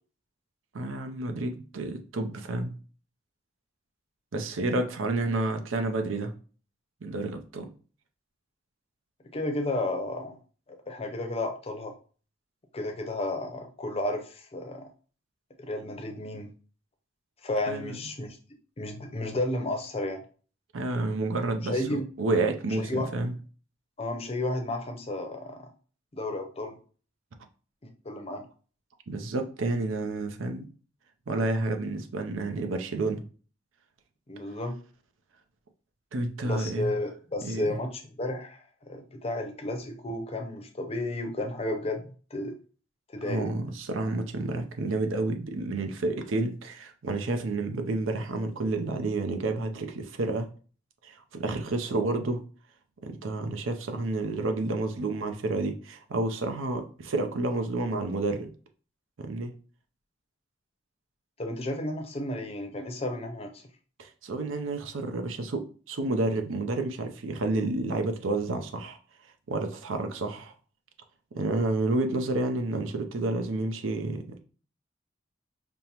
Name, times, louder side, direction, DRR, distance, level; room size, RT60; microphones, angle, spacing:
voice 1, 0.7-2.7 4.3-6.3 7.0-7.7 17.7-18.0 20.7-23.3 29.1-30.7 31.3-33.2 36.1-36.9 37.4-37.8 43.2-50.5 51.0-52.4 53.0-58.5 59.2-59.5 64.0-69.0 69.5-70.5 71.3-74.4, right 2 dB, 80° right, 6 dB, 0.6 m, -30 dB
voice 2, 9.3-10.4 10.7-11.9 12.7-14.9 15.6-16.5 17.4-18.4 18.8-20.2 21.6-22.1 22.8-23.1 24.0-25.7 26.1-26.8 27.8-28.5 34.3-34.8 36.4-42.6 43.1-43.5 61.4-63.6, left 1 dB, 30° left, 4 dB, 0.6 m, -32 dB
5.2 x 2.1 x 2.9 m, 0.39 s
head